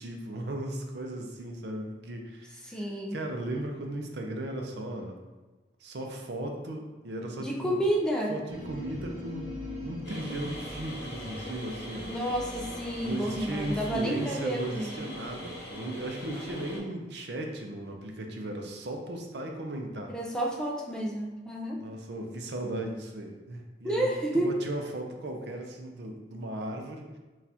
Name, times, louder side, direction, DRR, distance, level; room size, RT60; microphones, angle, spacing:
voice 1, 0.0-5.2 5.8-7.8 8.3-9.5 9.8-12.1 13.0-20.1 21.7-27.1, right 1 dB, 65° right, 2 dB, 0.5 m, -36 dB
voice 2, 2.6-3.2 7.4-8.4 12.1-15.0 20.1-21.8 23.8-24.6, right 1 dB, 5° left, -2 dB, 0.4 m, -30 dB
sound 1, 8.5-14.0, left 1 dB, 35° right, 0.8 m, -42 dB
sound 2, 10.0-16.8, left 1 dB, 50° left, 1.3 m, -42 dB
6.0 x 2.4 x 2.8 m, 1.2 s
head